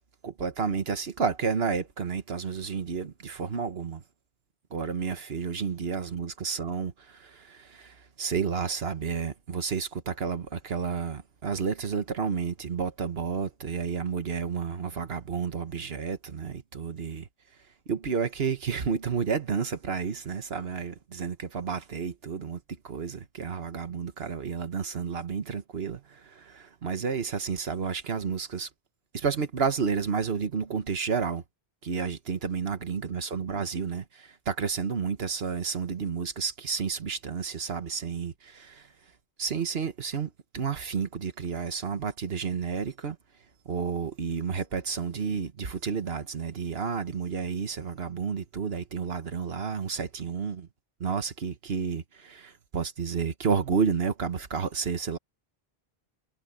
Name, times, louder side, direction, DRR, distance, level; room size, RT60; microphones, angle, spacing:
voice 1, 0.2-4.0 4.7-17.3 17.9-28.7 29.1-31.4 31.8-38.9 39.4-43.2 43.7-50.7 51.0-55.2, right 6 dB, 75° right, 1.6 m, -31 dB
omnidirectional pair, 1.1 m